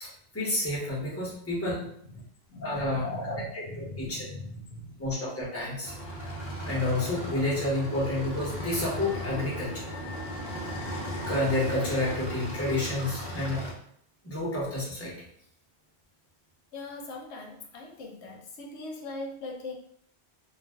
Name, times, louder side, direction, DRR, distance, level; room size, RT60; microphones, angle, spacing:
voice 1, 0.0-1.8 2.6-4.3 5.0-5.9 6.6-9.9 10.6-10.7 11.3-13.6 14.2-15.1, left 1 dB, 15° left, -6 dB, 0.9 m, -30 dB
voice 2, 1.8-2.2 2.5-5.1 16.7-19.7, left 2 dB, 85° left, 1 dB, 0.9 m, -41 dB
sound 1, 5.8-13.7, equal, 50° left, 0.7 m, -36 dB
2.5 x 2.1 x 3.4 m, 0.66 s
omnidirectional pair, 1.1 m